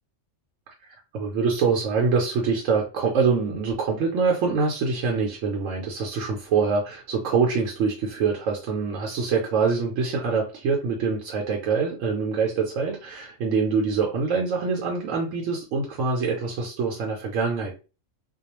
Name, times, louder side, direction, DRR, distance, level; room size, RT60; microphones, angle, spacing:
voice 1, 1.1-17.8, right 5 dB, 80° right, 0 dB, 1.0 m, -25 dB
2.3 x 2.2 x 2.9 m, 0.32 s
omnidirectional pair, 1.3 m